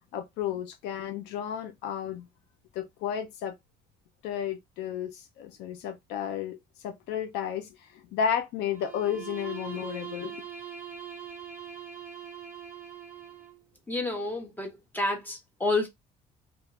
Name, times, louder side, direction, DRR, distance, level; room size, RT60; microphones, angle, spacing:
voice 1, 0.1-2.3 2.7-3.6 4.2-6.6 6.8-10.4, left 8 dB, 90° left, 0.6 m, -32 dB
Bowed string instrument, 8.7-13.6, right 7 dB, 10° right, 0.9 m, -42 dB
voice 2, 13.9-15.9, left 2 dB, 10° left, 1.1 m, -29 dB
3.0 x 2.1 x 3.2 m
cardioid pair, 110°, 17 cm